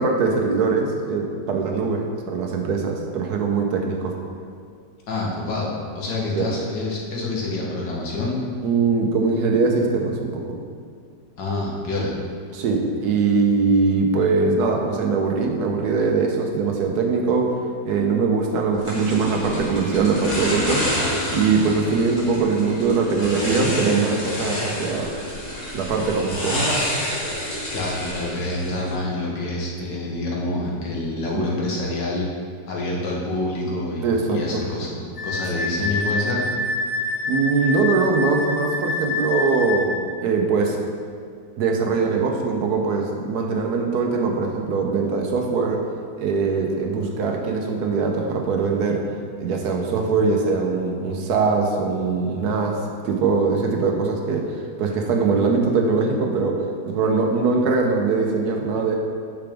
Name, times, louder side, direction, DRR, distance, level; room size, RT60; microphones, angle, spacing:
voice 1, 0.0-4.1 6.3-6.5 8.6-10.4 12.5-17.6 17.8-25.1 25.7-26.6 31.3-31.4 34.0-34.6 37.3-40.8 41.6-45.8 46.2-49.0 49.4-59.0, right 4 dB, 65° right, 2 dB, 1.2 m, -22 dB
voice 2, 5.1-8.4 11.4-12.1 27.7-32.3 32.7-35.0 35.2-36.4, left 2 dB, 80° left, -3 dB, 1.9 m, -27 dB
sound 1, 18.9-28.9, equal, 40° left, 2.2 m, -28 dB
Wind instrument woodwind instrument, 35.2-39.9, left 2 dB, 60° left, 2.1 m, -26 dB
8.5 x 5.9 x 3.5 m, 2.1 s
omnidirectional pair, 1.9 m